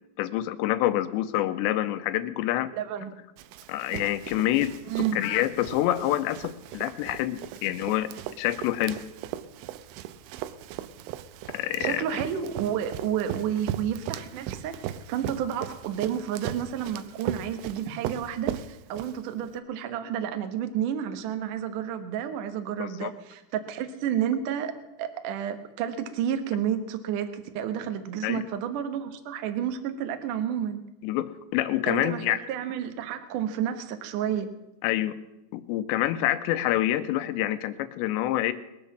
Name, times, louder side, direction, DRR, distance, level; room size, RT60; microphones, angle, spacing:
voice 1, 0.2-2.7 3.7-4.7 5.1-8.1 8.4-9.0 11.5-12.0 22.8-23.1 28.2-28.4 31.0-32.4 34.8-35.2 35.5-38.5, left 13 dB, 80° left, 11 dB, 2.9 m, -27 dB
voice 2, 2.7-3.1 4.9-5.2 11.8-14.7 15.1-24.7 25.0-30.8 31.9-34.5, right 9 dB, 70° right, 8 dB, 2.0 m, -30 dB
Run, 3.4-19.5, right 11 dB, 90° right, 3.1 m, -38 dB
21.0 x 8.1 x 7.3 m, 0.94 s
omnidirectional pair, 5.3 m